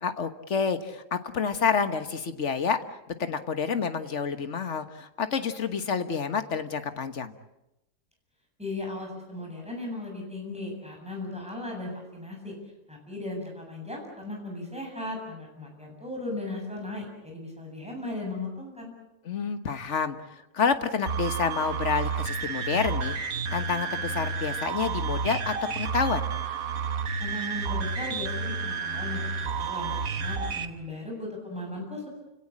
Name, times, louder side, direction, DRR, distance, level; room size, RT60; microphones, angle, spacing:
voice 1, 0.0-2.8 3.2-7.3 19.2-20.2 20.5-26.2, left 6 dB, 55° left, 10 dB, 1.7 m, -28 dB
voice 2, 8.6-12.6 12.9-18.9 27.2-32.1, left 2 dB, 5° right, 0 dB, 7.8 m, -37 dB
sound 1, 21.1-30.7, right 5 dB, 80° right, 1.8 m, -31 dB
29.5 x 17.5 x 8.7 m, 0.91 s
omnidirectional pair, 1.5 m